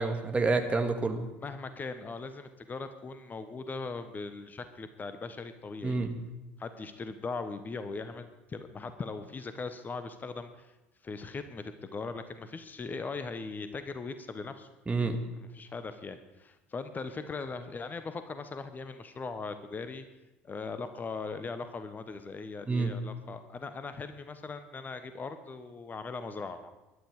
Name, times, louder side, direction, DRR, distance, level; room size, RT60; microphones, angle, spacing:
voice 1, 0.0-1.3 5.8-6.2 14.9-15.2 22.7-22.9, right 3 dB, 20° right, 5 dB, 2.2 m, -28 dB
voice 2, 1.4-6.0 6.6-10.7 11.0-14.7 15.4-20.0 20.4-26.7, left 4 dB, 25° left, 10 dB, 1.2 m, -39 dB
21.0 x 12.0 x 4.9 m, 1.0 s
figure-of-eight pair, 65°, 6 cm